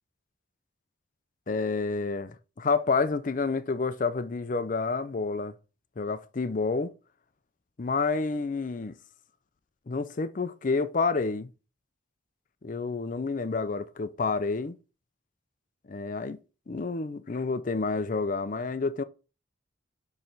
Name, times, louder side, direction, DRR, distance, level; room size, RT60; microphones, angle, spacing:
voice 1, 1.5-5.5 6.0-6.9 7.8-8.9 9.9-11.5 12.6-14.8 15.9-16.4 16.7-19.0, left 4 dB, 40° left, 0.5 m, -29 dB
6.8 x 3.2 x 5.8 m
head